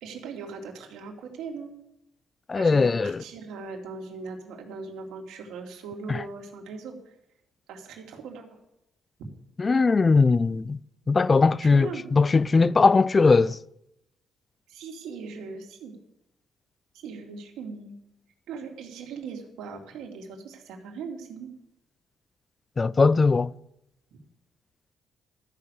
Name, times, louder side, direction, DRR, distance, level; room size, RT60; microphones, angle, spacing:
voice 1, 0.0-1.7 2.5-7.0 7.7-8.5 11.6-12.0 14.7-16.0 16.9-17.9 18.5-21.5 24.1-24.2, right 5 dB, 85° right, 2.7 m, -39 dB
voice 2, 2.5-3.2 6.1-6.2 9.6-10.8 11.1-13.6 22.8-23.5, left 4 dB, 30° left, 0.4 m, -20 dB
13.5 x 6.7 x 8.3 m
cardioid pair, 90°, 0 cm